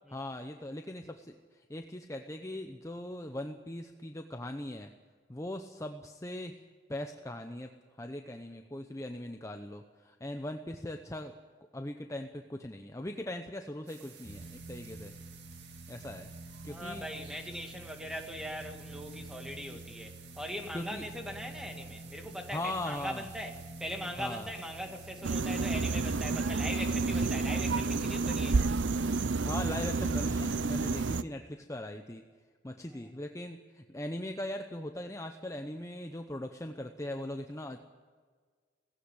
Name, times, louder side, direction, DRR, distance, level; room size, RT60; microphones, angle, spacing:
voice 1, 0.1-4.9 5.3-6.6 6.9-7.7 8.0-11.3 11.7-15.1 15.9-16.3 16.6-17.0 20.7-21.0 22.5-23.2 24.2-24.5 29.4-32.2 32.6-37.9, left 1 dB, 15° left, 5 dB, 0.8 m, -40 dB
sound 1, 13.9-29.5, right 8 dB, 70° right, 2.1 m, -54 dB
sound 2, 14.2-30.5, right 2 dB, 35° right, 3.8 m, -48 dB
voice 2, 16.7-28.8 32.9-33.1, equal, 5° right, 3 dB, 2.1 m, -41 dB
sound 3, 25.2-31.2, right 3 dB, 90° right, 0.6 m, -30 dB
18.0 x 16.0 x 9.8 m, 1.6 s
head